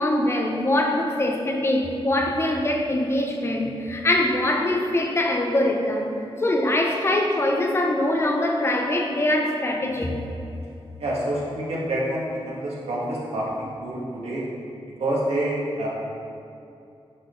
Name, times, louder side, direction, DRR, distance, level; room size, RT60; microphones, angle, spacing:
voice 1, 0.0-6.2 6.4-10.2, left 1 dB, 25° left, 1 dB, 0.7 m, -23 dB
voice 2, 11.0-14.4 15.0-15.9, right 1 dB, 90° right, -5 dB, 2.0 m, -27 dB
9.8 x 6.1 x 3.9 m, 2.6 s
wide cardioid pair, 175°, 10 cm